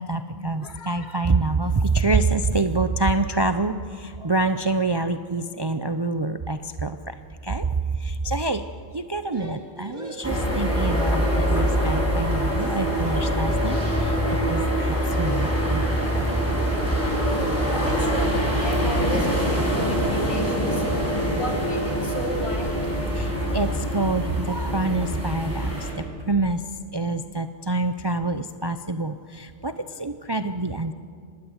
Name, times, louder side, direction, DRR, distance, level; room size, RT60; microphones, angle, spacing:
voice 1, 0.0-7.1 7.4-7.7 8.0-8.6 8.9-16.2 17.7-17.9 23.1-26.6 26.9-30.9, right 3 dB, 30° right, 9 dB, 0.5 m, -26 dB
voice 2, 0.6-1.2 8.2-8.6 11.1-11.3 11.6-12.1 12.9-13.2 15.7-15.8 17.2-20.8 21.4-22.9, equal, 65° left, 1 dB, 3.4 m, -34 dB
sound 1, 9.3-12.1 12.3-12.8 13.1-13.3 13.5-15.6 16.7-16.9 17.1-17.6 17.9-18.1 18.3-18.8, equal, 80° right, 3.9 m, -41 dB
sound 2, 10.2-25.9, equal, 10° left, 6.5 m, -24 dB
26.0 x 19.5 x 8.1 m, 2.3 s
omnidirectional pair, 1.2 m